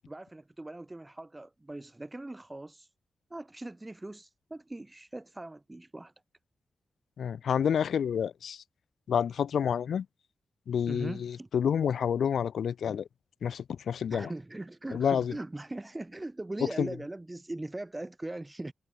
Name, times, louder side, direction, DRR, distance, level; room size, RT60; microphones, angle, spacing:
voice 1, 0.1-2.9 3.3-6.1 10.9-11.5 14.1-18.7, right 2 dB, 15° right, 6.6 m, -40 dB
voice 2, 7.2-8.6 9.1-10.0 10.7-13.1 13.4-14.3 14.9-15.3 16.8-16.9, left 8 dB, 80° left, 3.1 m, -29 dB
wide cardioid pair, 160°, 0 cm